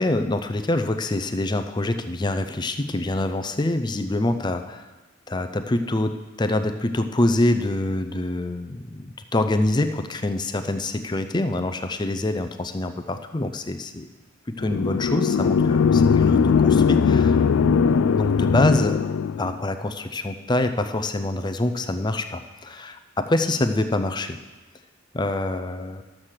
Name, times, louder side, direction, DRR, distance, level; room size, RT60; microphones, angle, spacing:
voice 1, 0.0-4.9 5.3-14.1 14.5-17.4 18.0-19.1 19.4-24.4 25.1-26.0, left 2 dB, 20° left, 8 dB, 0.5 m, -25 dB
sound 1, 14.6-19.5, left 6 dB, 80° left, 0.4 m, -19 dB
12.0 x 7.4 x 6.4 m, 1.2 s
head